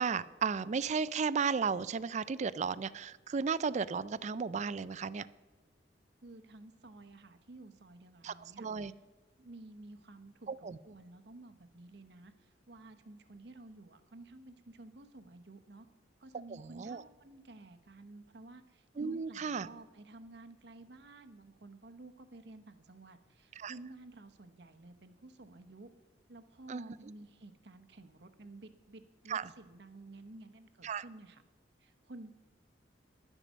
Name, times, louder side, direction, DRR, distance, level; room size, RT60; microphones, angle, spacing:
voice 1, 0.0-5.3 8.2-8.9 10.5-10.8 16.5-17.0 19.0-19.7 23.6-23.7 26.7-26.8 29.3-29.5 30.8-31.0, right 5 dB, 40° right, 17 dB, 0.4 m, -34 dB
voice 2, 6.2-8.9 9.4-15.9 16.2-25.9 26.3-31.4 31.8-32.3, right 2 dB, 65° right, 8 dB, 0.9 m, -53 dB
11.5 x 9.9 x 5.1 m, 1.3 s
head